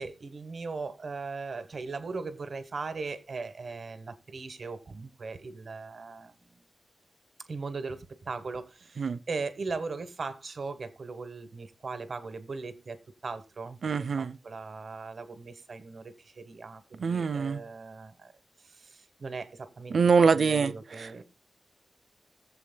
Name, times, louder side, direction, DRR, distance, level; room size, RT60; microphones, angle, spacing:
voice 1, 0.0-6.6 7.5-13.8 14.2-18.3 18.6-20.0 20.3-21.2, right 4 dB, 65° right, 1.2 m, -39 dB
voice 2, 13.8-14.4 17.0-17.6 19.9-21.1, right 5 dB, 80° right, 0.5 m, -25 dB
20.5 x 7.6 x 2.2 m
wide cardioid pair, 100°, 0 cm